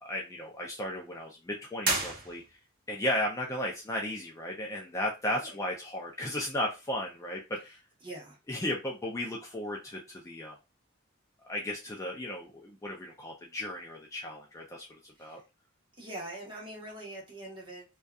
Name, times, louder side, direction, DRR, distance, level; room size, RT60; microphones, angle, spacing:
voice 1, 0.0-2.6 2.9-7.8 8.5-10.6 11.4-15.4, left 1 dB, 15° left, 0.4 m, -35 dB
sound 1, 1.8-2.8, right 3 dB, 45° right, 0.7 m, -32 dB
voice 2, 5.3-5.6 8.0-8.4 15.1-15.4 15.9-17.8, right 1 dB, 25° right, 1.0 m, -43 dB
2.6 x 2.3 x 2.3 m
head